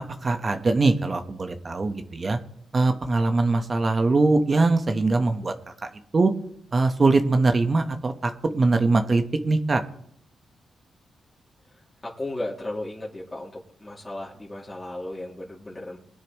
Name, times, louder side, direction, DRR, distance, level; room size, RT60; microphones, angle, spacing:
voice 1, 0.2-2.4 2.7-5.5 6.1-6.3 6.7-9.8, right 3 dB, 35° right, 7 dB, 1.2 m, -22 dB
voice 2, 12.2-13.5 13.8-16.0, left 1 dB, 20° left, -5 dB, 2.5 m, -34 dB
21.0 x 9.9 x 3.1 m, 0.65 s
cardioid pair, 85°, 0 cm